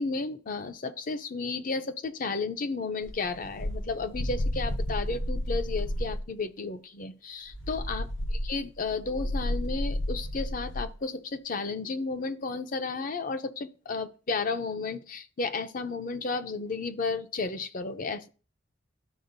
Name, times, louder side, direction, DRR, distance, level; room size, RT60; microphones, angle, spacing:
voice 1, 0.0-18.3, left 4 dB, 45° left, 10 dB, 0.6 m, -33 dB
sound 1, 3.1-6.3 7.5-11.0, left 1 dB, 75° left, 1.0 m, -32 dB
13.0 x 4.3 x 2.6 m, 0.37 s
head